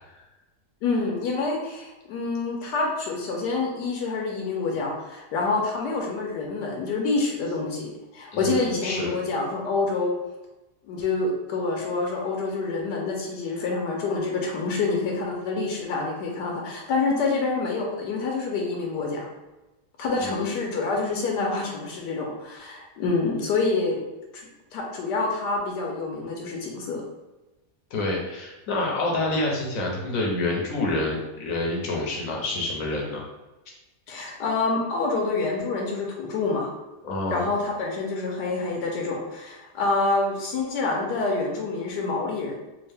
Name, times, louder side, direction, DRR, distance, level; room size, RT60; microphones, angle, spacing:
voice 1, 0.8-10.2 10.8-19.3 20.0-24.0 24.3-27.0 34.1-36.7 37.3-42.5, left 3 dB, 80° left, 0 dB, 1.2 m, -27 dB
voice 2, 8.3-9.1 20.2-20.4 27.9-33.2 37.0-37.5, left 2 dB, 65° left, -2 dB, 1.0 m, -28 dB
3.6 x 2.4 x 3.3 m, 1.0 s
omnidirectional pair, 1.8 m